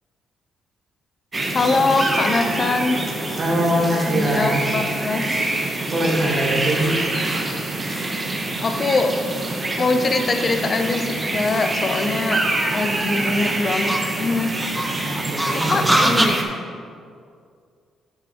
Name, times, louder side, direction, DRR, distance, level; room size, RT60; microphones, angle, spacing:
sound 1, 1.3-16.4, right 2 dB, 25° right, 1.1 m, -26 dB
voice 1, 1.5-3.0 4.1-5.3 8.6-9.1 9.8-12.4 12.7-14.6 15.7-16.4, left 3 dB, 40° left, 7 dB, 0.7 m, -22 dB
sound 2, 2.6-16.3, right 1 dB, 10° right, 0.7 m, -29 dB
voice 2, 3.4-4.6 5.9-7.1 15.1-16.1, right 1 dB, 45° right, -1 dB, 1.8 m, -22 dB
7.5 x 6.4 x 4.3 m, 2.3 s
cardioid pair, 90°, 0 cm